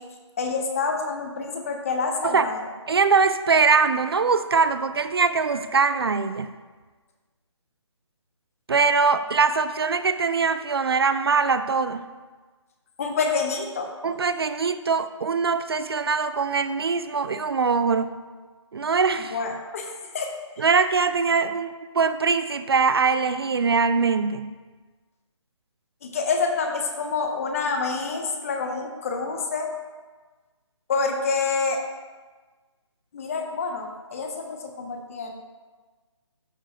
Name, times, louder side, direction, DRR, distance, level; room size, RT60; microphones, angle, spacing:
voice 1, 0.4-2.7 13.0-13.9 19.3-20.3 26.0-29.7 30.9-31.8 33.1-35.3, left 4 dB, 30° left, 3 dB, 0.8 m, -27 dB
voice 2, 2.9-6.5 8.7-12.0 14.0-18.1 18.7-19.4 20.6-24.5, right 5 dB, 50° right, 11 dB, 0.4 m, -22 dB
12.5 x 4.7 x 2.9 m, 1.3 s
figure-of-eight pair, 160°, 16 cm